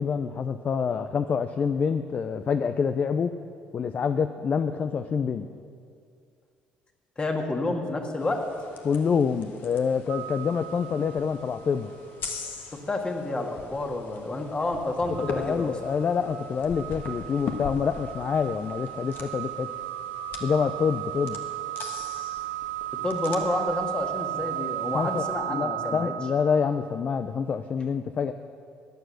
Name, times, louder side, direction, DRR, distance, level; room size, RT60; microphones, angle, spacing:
voice 1, 0.0-3.3 3.7-5.5 8.8-11.9 15.2-19.7 20.4-21.4 24.9-28.3, left 6 dB, 45° left, 9 dB, 0.5 m, -27 dB
voice 2, 7.2-8.5 12.7-15.7 23.0-26.1, left 2 dB, 25° left, 3 dB, 1.9 m, -29 dB
sound 1, 8.2-25.3, left 4 dB, 65° left, 1.6 m, -42 dB
sound 2, 10.1-12.0 12.4-12.5 15.1-27.0, right 14 dB, 85° right, 1.8 m, -35 dB
14.0 x 9.6 x 6.5 m, 2.3 s
supercardioid pair, 80°, 4 cm